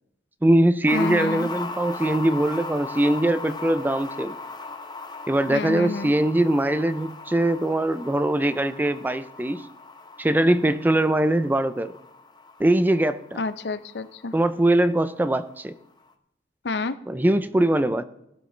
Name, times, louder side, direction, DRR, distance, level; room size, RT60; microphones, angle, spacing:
voice 1, 0.4-4.4 5.3-9.7 10.2-12.0 12.6-13.4 14.3-15.7 17.1-18.0, right 1 dB, 10° right, 13 dB, 0.4 m, -22 dB
voice 2, 0.9-1.5 5.5-6.1 13.4-14.3 16.6-17.0, left 3 dB, 70° left, 12 dB, 0.6 m, -29 dB
sound 1, 0.9-15.3 15.6-15.7, left 3 dB, 25° left, 0.7 m, -38 dB
15.0 x 11.5 x 3.2 m, 0.84 s
head